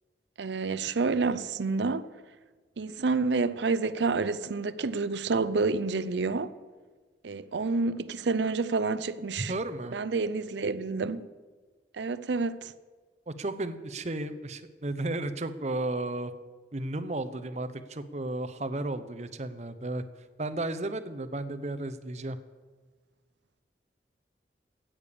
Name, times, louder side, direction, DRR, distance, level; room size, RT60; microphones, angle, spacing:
voice 1, 0.4-2.1 2.8-6.5 7.2-9.5 9.9-11.3 11.9-12.7, right 4 dB, 80° right, 0.6 m, -29 dB
voice 2, 9.4-10.0 13.3-16.3 16.7-20.0 20.4-22.4, right 2 dB, 40° right, 0.8 m, -33 dB
13.5 x 8.8 x 6.8 m
head